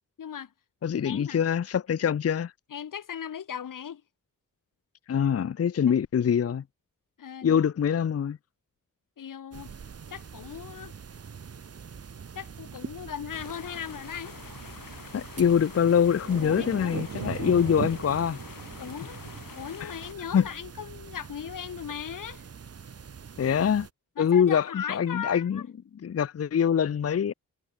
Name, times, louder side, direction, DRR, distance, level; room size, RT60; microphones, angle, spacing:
voice 1, 0.2-0.5 1.0-1.4 2.7-4.0 5.9-6.0 7.2-7.6 9.2-9.7 10.1-10.9 12.3-14.3 16.4-17.0 18.8-19.2 19.5-22.4 24.2-25.6, left 8 dB, 75° left, 1.1 m, -38 dB
voice 2, 0.8-2.5 5.1-6.6 7.4-8.4 15.1-18.4 19.8-19.9 20.3-20.5 23.4-23.9 24.2-25.6 26.0-27.3, left 8 dB, 45° left, 0.6 m, -24 dB
sound 1, 9.5-23.9, right 6 dB, 45° right, 1.1 m, -41 dB
sound 2, 13.3-20.1, left 7 dB, 90° left, 3.1 m, -47 dB
wide cardioid pair, 130°, 33 cm